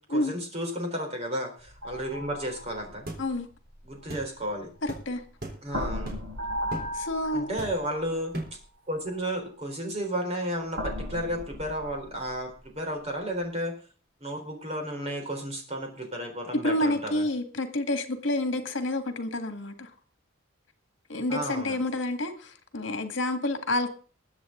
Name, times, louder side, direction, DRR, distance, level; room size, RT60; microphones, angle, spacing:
voice 1, 0.1-3.1 3.8-4.7 5.6-6.2 7.3-8.3 8.9-13.7 14.2-17.3 21.3-21.8, equal, 30° right, 3.9 m, -33 dB
sound 1, 1.6-5.2 5.7-8.2 9.1-9.2 10.7-12.6, equal, 80° right, 5.9 m, -37 dB
sound 2, 3.1-3.3 4.1-4.3 4.9-5.0 5.4-5.6 6.1-6.3 6.7-6.9 7.6-7.9 8.3-8.6, right 1 dB, 50° right, 3.7 m, -37 dB
voice 2, 4.8-5.2 6.9-7.5 16.5-19.9 21.1-23.9, left 1 dB, 70° left, 1.9 m, -29 dB
21.5 x 8.2 x 3.8 m
head